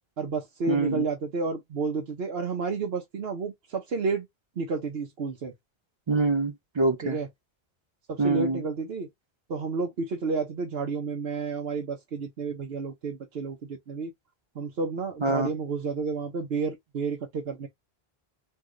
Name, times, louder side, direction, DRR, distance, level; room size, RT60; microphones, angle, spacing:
voice 1, 0.2-4.3 4.6-5.5 7.0-7.3 8.1-9.1 9.5-14.1 14.5-17.7, right 4 dB, 80° right, 1.2 m, -31 dB
voice 2, 0.7-1.0 6.1-7.2 8.2-8.6 15.2-15.5, right 3 dB, 35° right, 0.5 m, -25 dB
4.7 x 2.3 x 3.8 m
omnidirectional pair, 1.0 m